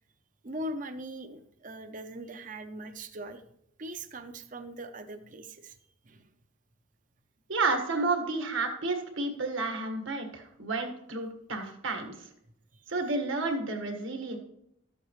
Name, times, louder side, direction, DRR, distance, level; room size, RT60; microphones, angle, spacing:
voice 1, 0.4-3.4 3.8-5.7 6.1-6.2, right 1 dB, 40° right, 8 dB, 0.7 m, -40 dB
voice 2, 7.5-12.3 12.9-14.4, right 3 dB, 70° right, 4 dB, 1.7 m, -31 dB
13.0 x 8.2 x 3.2 m, 0.74 s
head